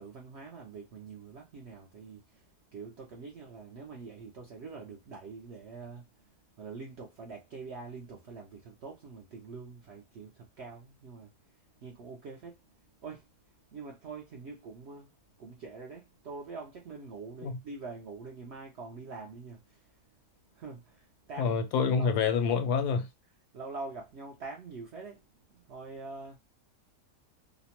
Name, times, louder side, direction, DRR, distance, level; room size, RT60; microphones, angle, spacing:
voice 1, 0.0-12.6 13.0-13.3 13.7-15.1 15.4-20.0 20.5-21.6 22.0-22.1 23.5-25.2 25.5-26.4, right 4 dB, 75° right, 0.6 m, -45 dB
voice 2, 21.4-23.1, left 6 dB, 90° left, 1.2 m, -27 dB
2.8 x 2.0 x 2.8 m
omnidirectional pair, 1.7 m